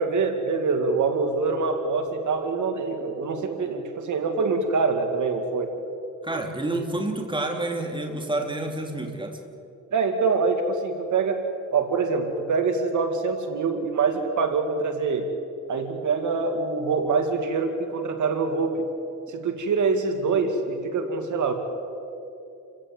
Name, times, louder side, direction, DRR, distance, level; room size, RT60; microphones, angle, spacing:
voice 1, 0.0-5.7 9.9-11.4 11.7-15.3 15.7-18.9 19.3-21.5, right 4 dB, 75° right, 6 dB, 2.4 m, -25 dB
voice 2, 6.2-9.4, right 2 dB, 15° right, 2 dB, 3.3 m, -29 dB
29.5 x 16.5 x 7.9 m, 2.7 s
cardioid pair, 100°, 30 cm